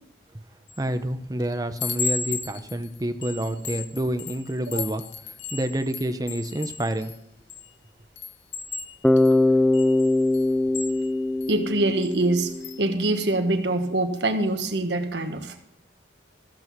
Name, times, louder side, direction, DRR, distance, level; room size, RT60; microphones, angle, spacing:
Chime, 0.7-1.0 1.4-7.7 8.2-11.5 12.0-12.2 12.5-12.8, left 5 dB, 85° left, 0.8 m, -35 dB
voice 1, 0.8-5.0 5.5-7.1, right 1 dB, 20° right, 9 dB, 0.7 m, -28 dB
Bass guitar, 9.0-13.0, left 2 dB, 5° left, 0.3 m, -22 dB
voice 2, 11.5-12.5 12.8-15.6, right 2 dB, 70° right, 6 dB, 1.3 m, -24 dB
14.0 x 7.7 x 6.0 m, 0.78 s
head